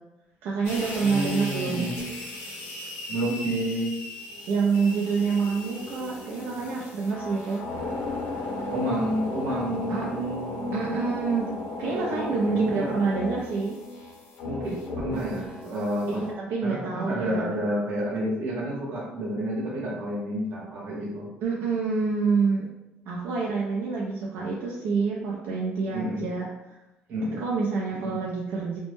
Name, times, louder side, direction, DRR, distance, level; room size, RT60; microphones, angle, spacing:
voice 1, 0.4-1.9 4.5-7.6 9.9-10.1 10.7-11.5 11.8-13.8 16.1-17.5 21.4-22.7 23.1-26.5 27.3-28.8, right 4 dB, 75° right, -3 dB, 0.4 m, -27 dB
sound 1, 0.6-16.3, left 3 dB, 90° left, 0.6 m, -36 dB
voice 2, 1.0-2.0 3.1-3.9 8.7-11.1 11.9-13.1 14.4-16.2 16.6-21.3 25.9-26.2 27.1-27.4 27.9-28.2, right 1 dB, 50° right, -4 dB, 0.8 m, -30 dB
2.1 x 2.0 x 3.0 m, 0.96 s
cardioid pair, 155°, 4 cm